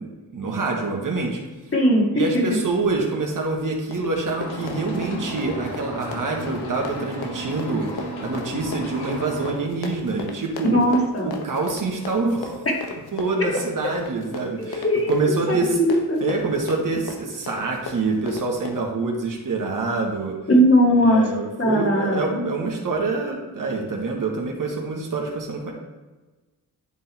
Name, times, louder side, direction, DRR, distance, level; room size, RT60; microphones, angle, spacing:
voice 1, 0.0-1.4 2.1-10.8 11.2-12.7 13.1-15.8 16.2-20.3 20.9-25.7, right 3 dB, 55° right, 0 dB, 1.8 m, -26 dB
voice 2, 1.7-2.1 2.3-2.6 10.6-11.3 14.6-16.2 20.5-21.2 21.6-22.4, equal, 35° left, -2 dB, 2.2 m, -19 dB
Run, 3.5-18.9, left 4 dB, 70° left, 1.2 m, -37 dB
sound 1, 4.4-9.5, equal, 85° left, 1.6 m, -34 dB
10.5 x 3.7 x 4.4 m, 1.2 s
cardioid pair, 65°, 39 cm